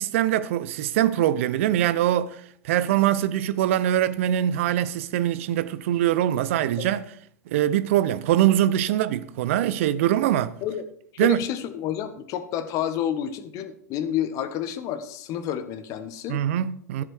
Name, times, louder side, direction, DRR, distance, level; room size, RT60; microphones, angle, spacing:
voice 1, 0.0-7.1 7.5-10.6 11.2-11.4 16.3-17.0, right 12 dB, 55° right, 0.7 m, -23 dB
voice 2, 11.1-16.4, left 10 dB, 40° left, 1.3 m, -29 dB
13.5 x 7.9 x 4.6 m
figure-of-eight pair, 90°, 8 cm